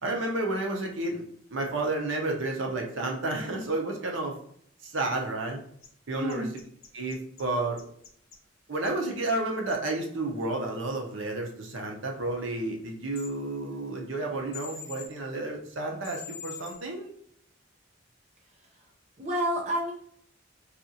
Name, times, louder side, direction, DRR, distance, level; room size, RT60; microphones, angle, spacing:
voice 1, 0.0-1.2 1.5-4.3 4.8-5.6 6.1-6.5 6.9-7.8 8.7-17.1, right 2 dB, 75° right, 1 dB, 0.8 m, -31 dB
sound 1, 5.8-5.9 6.3-7.4 7.8-8.4 8.8-8.9 9.3-9.4 9.7-9.8 13.1-13.3 14.5-15.1 16.0-16.7, left 7 dB, 85° left, 0.7 m, -43 dB
voice 2, 6.1-6.5 18.6-18.9 19.2-19.9, equal, 35° right, -1 dB, 0.5 m, -30 dB
4.1 x 2.4 x 2.7 m, 0.66 s
head